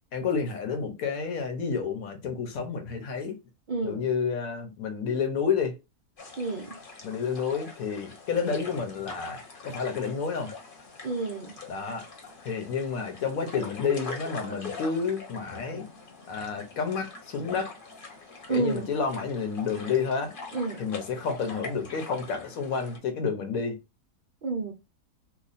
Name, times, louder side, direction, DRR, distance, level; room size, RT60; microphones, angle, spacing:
voice 1, 0.1-3.4 3.8-5.8 7.0-10.5 11.7-12.1 12.4-15.9 16.3-17.7 18.5-20.3 20.8-23.8, left 5 dB, 70° left, 1.2 m, -30 dB
voice 2, 3.7-4.1 6.4-6.8 11.0-11.5 14.5-14.6 18.5-19.0 20.5-20.8 24.4-24.7, right 3 dB, 60° right, 0.5 m, -30 dB
sound 1, 6.2-23.0, left 4 dB, 40° left, 0.9 m, -43 dB
3.0 x 2.2 x 4.0 m
omnidirectional pair, 1.6 m